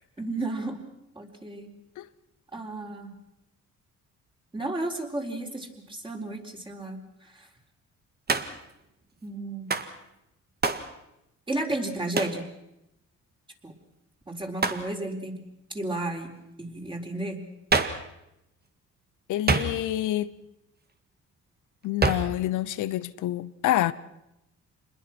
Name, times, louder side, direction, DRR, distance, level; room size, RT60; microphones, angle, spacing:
voice 1, 0.2-0.8 1.2-1.7 2.5-3.1 4.5-7.0 7.4-7.5 9.2-9.7 11.5-12.4 13.6-13.7 14.3-15.4 15.7-16.3 16.6-17.4, right 2 dB, 15° right, 4.3 m, -33 dB
Hands, 8.3-8.7 9.7-9.9 10.6-10.9 12.2-12.4 14.6-14.9 17.7-18.1 19.5-20.0 22.0-22.4, right 4 dB, 30° right, 1.9 m, -26 dB
voice 2, 19.3-20.3 21.8-23.9, left 14 dB, 85° left, 0.9 m, -27 dB
26.5 x 21.0 x 6.2 m
cardioid pair, 90°, 30 cm